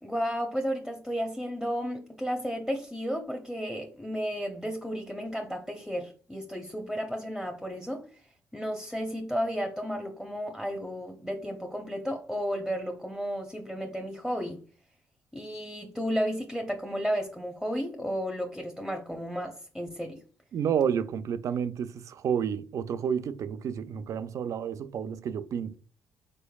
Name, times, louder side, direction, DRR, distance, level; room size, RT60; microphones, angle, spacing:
voice 1, 0.0-8.1 8.5-14.6 15.3-20.2, equal, 5° left, 0.7 m, -33 dB
voice 2, 20.5-25.7, right 8 dB, 60° right, 0.4 m, -30 dB
5.2 x 4.0 x 2.3 m
cardioid pair, 85°, 6 cm